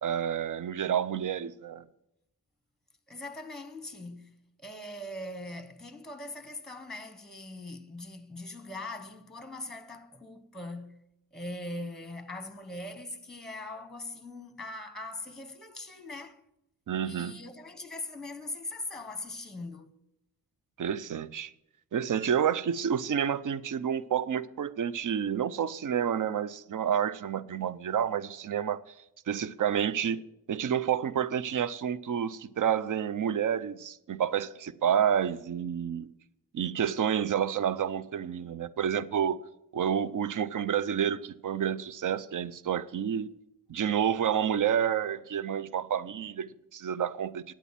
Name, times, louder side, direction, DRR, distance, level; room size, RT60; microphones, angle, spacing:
voice 1, 0.0-1.8 16.9-17.3 20.8-21.5 21.9-28.8 29.3-30.2 30.5-36.1 36.5-39.4 39.7-43.3 43.7-47.4, right 8 dB, 60° right, 0.6 m, -29 dB
voice 2, 3.1-11.0 11.3-16.4 17.0-19.9, left 2 dB, ahead, 1.0 m, -41 dB
9.3 x 8.3 x 7.4 m
wide cardioid pair, 100°, 35 cm